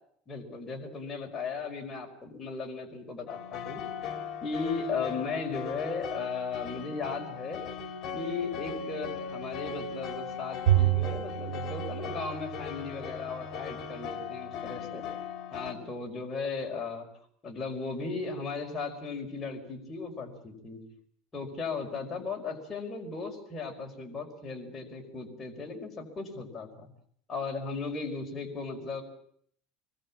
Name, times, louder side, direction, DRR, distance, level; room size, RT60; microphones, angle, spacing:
voice 1, 0.3-3.8 4.4-7.6 8.1-15.0 15.5-17.1 17.4-20.8 21.3-26.9 27.3-29.0, left 4 dB, 20° left, 1 dB, 5.1 m, -36 dB
sound 1, 3.3-15.7, left 6 dB, 40° left, 4.0 m, -38 dB
Bowed string instrument, 10.7-13.2, right 13 dB, 70° right, 4.0 m, -28 dB
26.0 x 21.5 x 7.4 m, 0.65 s
supercardioid pair, 140°, 0 cm